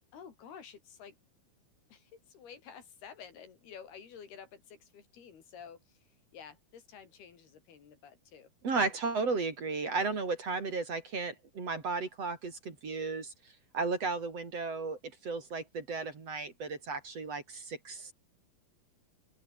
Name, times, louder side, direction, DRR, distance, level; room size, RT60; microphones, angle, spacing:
voice 1, 0.1-1.2 1.9-5.8 6.3-8.5, left 7 dB, 90° left, 5.8 m, -51 dB
voice 2, 8.6-13.3 13.7-18.1, right 4 dB, 40° right, 4.3 m, -34 dB
omnidirectional pair, 4.4 m